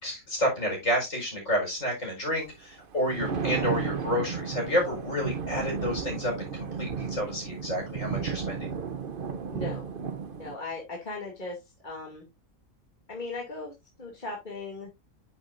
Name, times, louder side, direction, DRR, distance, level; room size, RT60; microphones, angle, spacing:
voice 1, 0.0-8.7, equal, 60° left, 0 dB, 5.1 m, -30 dB
Thunder, 2.8-10.6, right 6 dB, 45° right, 0.9 m, -33 dB
voice 2, 9.5-9.8 10.4-11.6 11.8-12.3 13.1-13.7 14.0-14.9, left 3 dB, 35° left, -1 dB, 2.6 m, -37 dB
9.3 x 7.1 x 2.6 m, 0.21 s
omnidirectional pair, 1.5 m